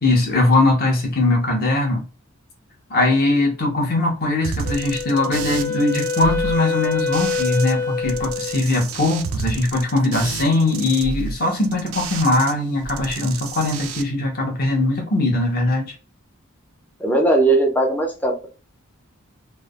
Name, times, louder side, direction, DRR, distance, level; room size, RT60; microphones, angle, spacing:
voice 1, 0.0-2.0 2.9-15.9, left 2 dB, 45° left, 0.9 m, -20 dB
sound 1, 4.4-7.7 8.0-12.5 12.8-14.0, right 5 dB, 65° right, 0.3 m, -31 dB
Wind instrument woodwind instrument, 4.6-8.7, left 5 dB, 75° left, 0.4 m, -25 dB
voice 2, 17.0-18.5, right 2 dB, 10° left, 0.4 m, -18 dB
3.2 x 2.0 x 2.3 m
head